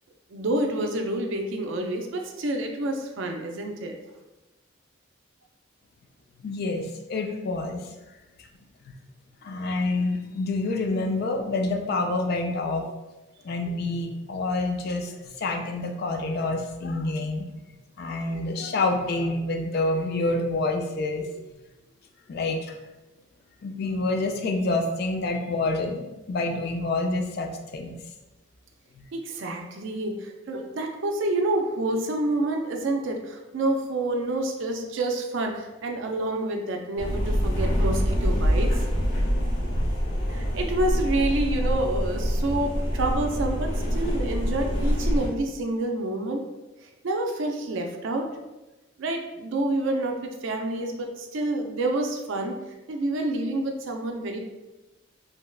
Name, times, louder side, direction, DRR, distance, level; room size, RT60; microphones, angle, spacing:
voice 1, 0.3-4.0 29.1-38.8 40.3-46.4 47.0-48.3 49.0-52.6 52.9-54.4, right 2 dB, 65° right, 3 dB, 0.4 m, -28 dB
voice 2, 6.4-7.9 8.9-9.0 9.4-12.9 13.4-17.4 18.0-21.4 22.3-22.7 23.6-27.5 27.7-27.9 29.0-29.1, left 2 dB, 50° left, 4 dB, 0.3 m, -27 dB
sound 1, 37.0-45.3, equal, 80° left, 0.9 m, -25 dB
3.2 x 2.8 x 2.3 m, 1.0 s
head